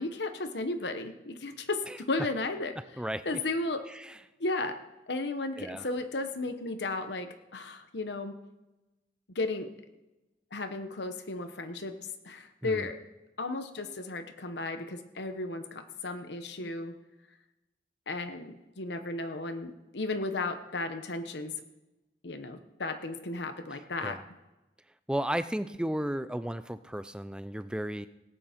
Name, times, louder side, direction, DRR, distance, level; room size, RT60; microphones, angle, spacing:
voice 1, 0.0-2.8 3.2-3.8 4.4-4.8 5.1-8.4 9.3-9.7 10.5-11.9 12.2-13.0 13.4-16.9 18.1-21.5 22.2-24.2, left 2 dB, 80° left, 8 dB, 1.0 m, -34 dB
voice 2, 1.9-2.3 3.0-3.4 3.9-4.2 5.6-5.9 12.6-12.9 16.6-16.7 23.7-24.2 25.1-28.1, right 1 dB, 5° right, 12 dB, 0.4 m, -34 dB
18.0 x 8.7 x 5.1 m, 1.0 s
head